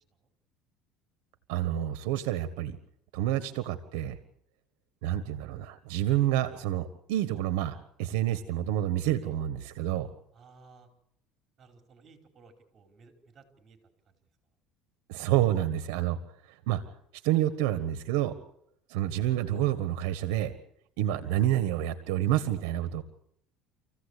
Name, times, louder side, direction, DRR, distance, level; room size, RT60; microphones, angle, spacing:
voice 1, 1.5-2.8 3.1-4.1 5.0-10.1 15.1-16.2 16.7-16.8 17.2-18.3 18.9-20.5 21.0-23.0, right 13 dB, 85° right, 11 dB, 1.4 m, -28 dB
voice 2, 10.3-10.9 11.6-13.8 14.1-14.2, right 4 dB, 35° right, 5 dB, 5.0 m, -57 dB
26.5 x 15.5 x 8.4 m, 0.72 s
supercardioid pair, 115°, 0 cm